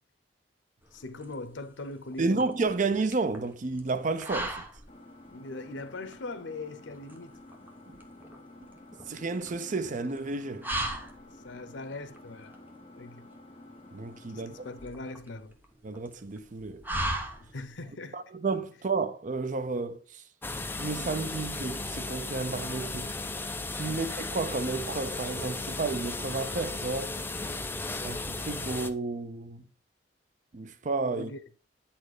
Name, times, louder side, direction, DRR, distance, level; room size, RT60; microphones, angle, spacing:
sound 1, 0.8-17.9, right 1 dB, 10° right, 1.1 m, -39 dB
voice 1, 0.9-2.4 5.3-7.3 11.4-12.5 12.9-13.3 14.3-15.5 17.4-18.2 23.9-24.1 31.1-31.4, left 2 dB, 85° left, 0.8 m, -41 dB
voice 2, 2.2-4.7 7.9-8.0 9.1-10.7 13.9-14.5 15.8-16.8 18.1-20.2 20.8-23.1 23.7-27.2 28.0-29.6 30.5-31.3, right 3 dB, 45° right, 0.5 m, -31 dB
Engine, 4.9-14.9, left 2 dB, 30° left, 1.3 m, -51 dB
sound 2, 20.4-28.9, left 2 dB, 10° left, 0.5 m, -35 dB
9.0 x 4.3 x 4.8 m
head